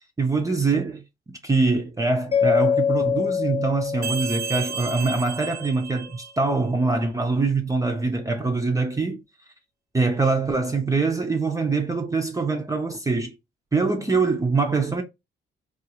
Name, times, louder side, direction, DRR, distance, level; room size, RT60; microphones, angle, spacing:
voice 1, 0.2-1.0 1.3-9.2 9.9-13.4 13.7-15.0, right 3 dB, 15° right, 0.6 m, -24 dB
Mallet percussion, 2.3-5.3, left 7 dB, 30° left, 0.4 m, -25 dB
sound 1, 4.0-6.6, right 7 dB, 55° right, 0.7 m, -33 dB
3.6 x 2.4 x 2.8 m
cardioid pair, 90°, 20 cm